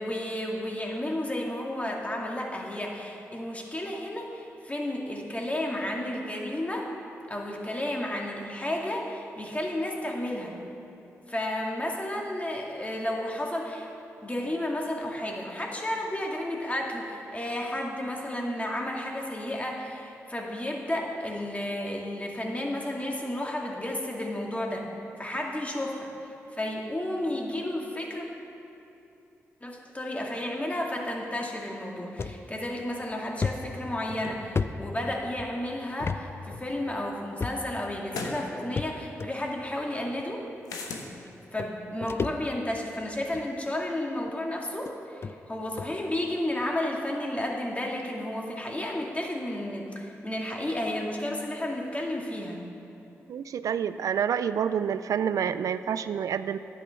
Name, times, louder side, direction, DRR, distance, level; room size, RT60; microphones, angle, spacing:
voice 1, 0.0-6.9 7.3-10.6 11.3-13.9 14.2-24.9 25.2-26.1 26.5-28.2 29.6-40.4 41.5-52.6, left 1 dB, 25° left, -1 dB, 2.2 m, -32 dB
sound 1, 32.2-32.4 32.8-32.9 33.4-35.5 36.0-36.2 36.5-36.6 37.4-37.9 38.8-39.3 40.2-40.3 41.3-41.4 41.6-42.8 43.2-43.5 44.3-44.4 44.9-45.0 45.2-45.3 45.8-46.0, left 4 dB, 45° left, 0.4 m, -32 dB
sound 2, 36.7-36.8 38.1-38.4 40.7-41.1, left 4 dB, 85° left, 1.0 m, -35 dB
voice 2, 53.3-56.6, right 8 dB, 75° right, 12 dB, 0.3 m, -28 dB
11.0 x 8.3 x 5.9 m, 2.9 s
supercardioid pair, 40°, 6 cm